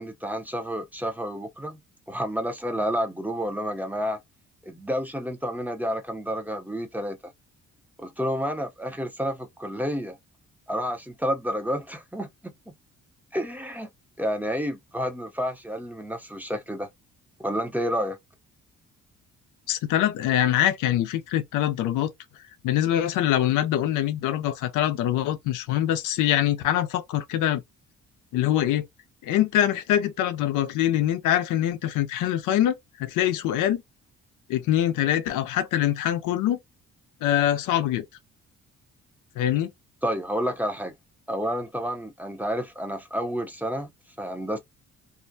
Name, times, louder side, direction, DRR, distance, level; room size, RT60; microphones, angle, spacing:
voice 1, 0.0-1.8 2.1-4.2 4.6-7.2 8.0-10.2 10.7-12.7 13.3-13.9 14.2-16.9 17.4-18.2 40.0-40.9 41.3-43.9 44.2-44.6, equal, 5° right, 0.6 m, -30 dB
voice 2, 19.7-22.1 22.6-27.6 28.3-28.9 29.2-32.7 33.0-33.8 34.5-36.6 37.2-38.1 39.4-39.7, left 12 dB, 90° left, 0.5 m, -24 dB
2.4 x 2.1 x 2.6 m
cardioid pair, 90°, 30 cm